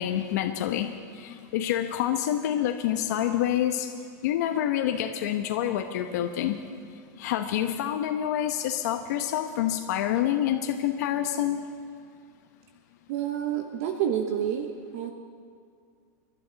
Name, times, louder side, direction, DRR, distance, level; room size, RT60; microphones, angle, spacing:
voice 1, 0.0-3.9 4.2-6.6 7.2-11.6, left 11 dB, 65° left, 5 dB, 1.1 m, -27 dB
voice 2, 13.1-15.1, right 9 dB, 55° right, 5 dB, 1.3 m, -29 dB
28.5 x 11.5 x 4.1 m, 2.2 s
supercardioid pair, 150°, 10 cm